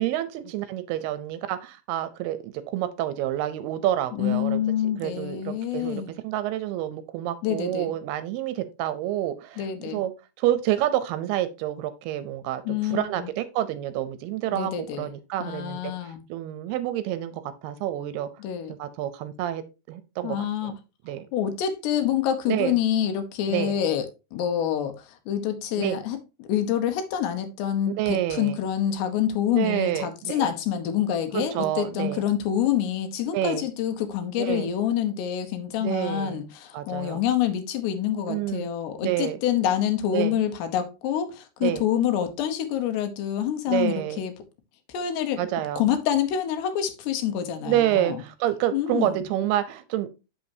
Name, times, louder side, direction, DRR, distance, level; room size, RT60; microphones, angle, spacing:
voice 1, 0.0-4.6 5.0-10.1 10.4-14.7 15.0-15.9 16.3-18.3 18.8-19.6 19.9-20.7 21.1-21.3 22.5-22.8 23.5-23.7 25.8-26.0 28.0-28.6 29.5-30.5 31.3-32.2 33.3-33.6 34.4-34.7 35.8-36.4 36.7-37.2 38.3-38.7 39.0-39.4 40.1-40.3 41.6-41.8 43.7-44.2 45.4-45.8 47.7-50.1, right 13 dB, 80° right, 2.5 m, -28 dB
voice 2, 4.1-6.1 7.4-7.9 9.6-10.0 12.7-13.3 14.5-15.1 15.4-16.2 18.4-18.8 20.2-20.7 21.3-44.3 44.9-45.4 45.8-48.2 48.7-49.2, left 10 dB, 85° left, 3.2 m, -27 dB
8.3 x 7.1 x 2.7 m
omnidirectional pair, 4.8 m